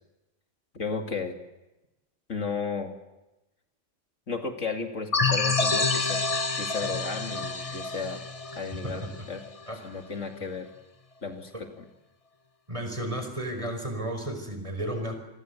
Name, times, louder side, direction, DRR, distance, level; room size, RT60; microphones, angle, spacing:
voice 1, 0.7-1.4 2.3-2.9 4.3-6.2 6.6-8.2 8.5-9.4 9.8-10.7 11.2-11.9, left 5 dB, 75° left, 4 dB, 2.7 m, -34 dB
sound 1, 5.1-9.6, left 3 dB, 30° left, 1.2 m, -28 dB
voice 2, 12.7-15.1, right 1 dB, 25° right, 6 dB, 5.2 m, -33 dB
27.5 x 21.0 x 8.1 m, 1.0 s
omnidirectional pair, 1.3 m